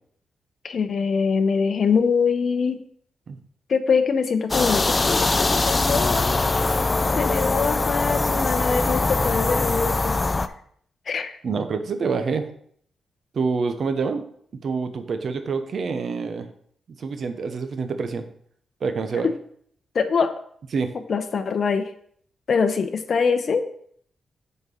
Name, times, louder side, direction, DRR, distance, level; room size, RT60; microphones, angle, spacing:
voice 1, 0.6-2.8 3.7-6.4 7.2-10.2 11.1-11.4 19.2-19.3 19.9-20.3 21.1-21.9 22.5-23.6, left 5 dB, 55° left, 8 dB, 0.8 m, -23 dB
sound 1, 4.5-10.5, left 3 dB, 25° left, 0.4 m, -22 dB
voice 2, 11.4-12.5 13.3-14.2 14.6-16.5 17.0-18.2 18.8-19.3 20.7-20.9, right 5 dB, 55° right, 8 dB, 0.9 m, -26 dB
6.9 x 4.4 x 5.0 m, 0.62 s
cardioid pair, 100°, 0 cm